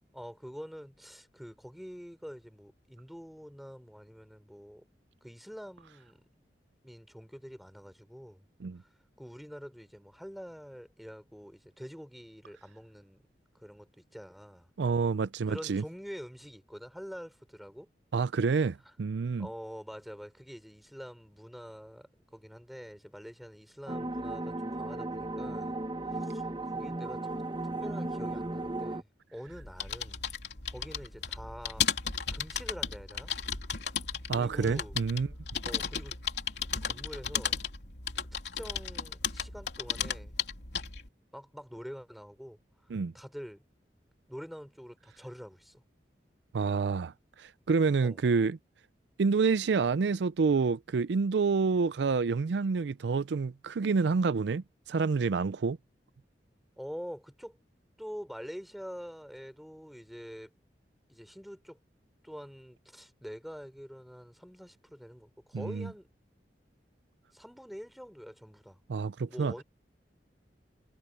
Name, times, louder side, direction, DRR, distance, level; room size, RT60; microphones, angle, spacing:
voice 1, 0.1-4.9 5.2-6.2 6.8-8.5 8.8-8.9 9.2-13.2 13.5-14.7 15.5-17.9 19.4-25.7 26.1-27.4 27.8-30.2 30.7-31.9 32.3-33.3 34.3-35.0 35.6-36.2 36.8-37.7 38.5-40.4 41.3-42.6 43.1-43.6 44.3-45.8 48.0-48.2 56.8-57.6 58.0-60.5 61.1-61.8 62.2-66.1 67.3-68.8 69.3-69.6, equal, ahead, 3.5 m, -46 dB
voice 2, 14.8-15.8 18.1-19.5 34.3-35.3 42.9-43.1 46.5-48.6 49.2-55.8 65.5-65.9 68.9-69.5, right 4 dB, 80° right, 0.4 m, -28 dB
sound 1, 23.9-29.0, right 2 dB, 25° right, 1.2 m, -35 dB
sound 2, 29.5-41.1, left 7 dB, 75° left, 3.3 m, -35 dB
head